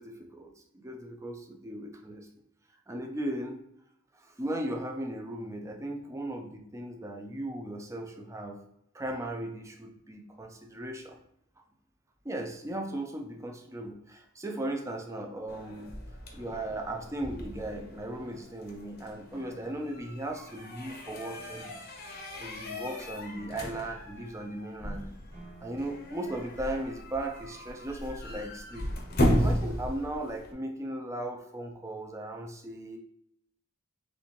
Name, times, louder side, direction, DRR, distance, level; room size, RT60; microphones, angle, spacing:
voice 1, 0.0-2.3 2.9-3.6 4.2-8.6 8.9-11.2 12.2-15.9 16.3-21.7 22.4-25.1 25.6-28.9 29.4-33.0, right 1 dB, 15° right, 3 dB, 0.5 m, -37 dB
sound 1, 15.5-30.5, equal, 45° left, 0.8 m, -35 dB
Piano, 19.3-27.3, right 1 dB, 45° right, 1.4 m, -57 dB
4.2 x 3.3 x 3.0 m, 0.76 s
head